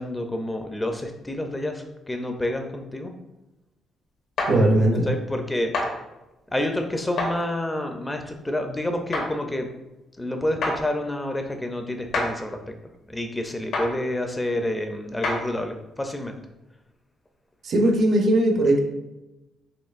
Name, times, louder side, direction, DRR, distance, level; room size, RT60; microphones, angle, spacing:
voice 1, 0.0-3.1 4.9-5.7 6.5-9.7 10.2-12.6 13.1-16.4, left 1 dB, 15° left, 4 dB, 0.4 m, -28 dB
Rock On Rock, 4.4-4.5 5.7-5.9 7.2-7.3 9.1-9.3 10.6-10.8 12.1-12.3 13.7-13.9 15.2-15.4, left 2 dB, 75° left, 0.9 m, -25 dB
voice 2, 4.5-5.1 17.6-18.8, right 1 dB, 60° right, 4 dB, 0.6 m, -19 dB
4.3 x 2.9 x 2.4 m, 0.98 s
cardioid pair, 90°, 0 cm